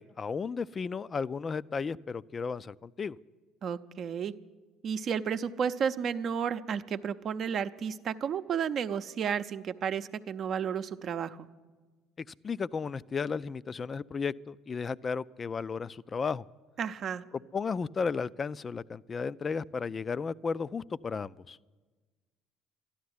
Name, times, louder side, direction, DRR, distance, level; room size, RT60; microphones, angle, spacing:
voice 1, 0.0-3.2 12.2-16.4 17.3-21.6, left 5 dB, 35° left, 19 dB, 0.4 m, -34 dB
voice 2, 3.6-4.3 4.8-11.5 16.8-17.2, right 7 dB, 55° right, 10 dB, 0.6 m, -32 dB
13.0 x 11.5 x 9.6 m, 1.3 s
hypercardioid pair, 65°, 0 cm